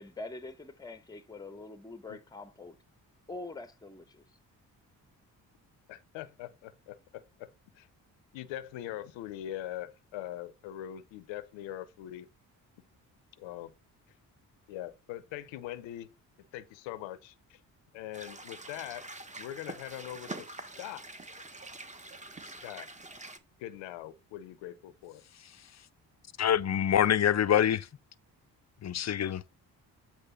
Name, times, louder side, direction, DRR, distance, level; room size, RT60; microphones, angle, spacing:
voice 1, 0.0-2.8 3.3-4.2, left 3 dB, 10° left, 0.9 m, -44 dB
voice 2, 5.9-7.5 7.7-7.9 8.3-12.3 13.4-13.7 14.7-16.1 16.5-17.6 17.9-19.1 19.4-21.1 22.4-22.9 23.6-25.2, left 13 dB, 80° left, 0.7 m, -42 dB
sound 1, 18.1-23.4, right 2 dB, 15° right, 1.3 m, -45 dB
voice 3, 26.4-27.9 28.8-29.4, left 10 dB, 40° left, 0.6 m, -25 dB
8.3 x 3.2 x 5.4 m
hypercardioid pair, 45°, 45 cm